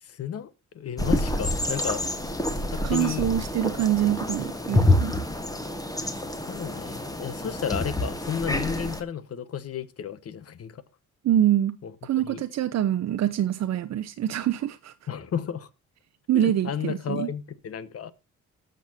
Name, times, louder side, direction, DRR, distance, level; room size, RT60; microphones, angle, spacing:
voice 1, 0.0-2.0 2.7-3.3 6.5-10.8 11.8-11.9 12.2-12.4 15.1-15.7 16.3-18.1, left 8 dB, 50° left, 1.1 m, -33 dB
sound 1, 1.0-9.0, left 1 dB, 10° left, 1.4 m, -27 dB
voice 2, 2.8-5.1 11.2-11.8 12.0-14.9 16.3-17.3, right 11 dB, 60° right, 0.7 m, -25 dB
19.5 x 6.6 x 2.6 m
cardioid pair, 90°, 30 cm